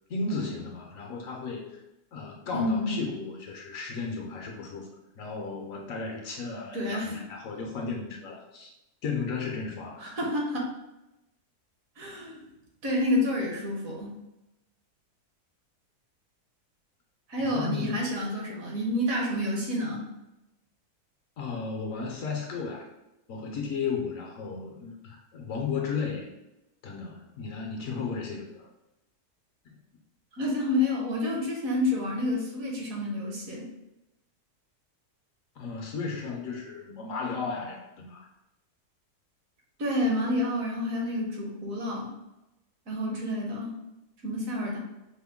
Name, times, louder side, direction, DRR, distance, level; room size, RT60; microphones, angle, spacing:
voice 1, 0.1-1.8 2.1-4.9 5.2-8.7 9.0-10.1 17.4-18.1 21.4-22.9 23.3-26.3 26.8-28.7 35.6-38.3, left 4 dB, 65° left, 1 dB, 0.9 m, -34 dB
voice 2, 2.5-3.0 6.7-7.2 10.0-10.7 12.0-12.4 12.8-14.2 17.3-20.1 30.4-33.7 39.8-42.1 42.9-43.7 44.2-44.8, left 1 dB, 65° right, -1 dB, 1.3 m, -29 dB
5.0 x 2.1 x 3.5 m, 0.94 s
omnidirectional pair, 1.7 m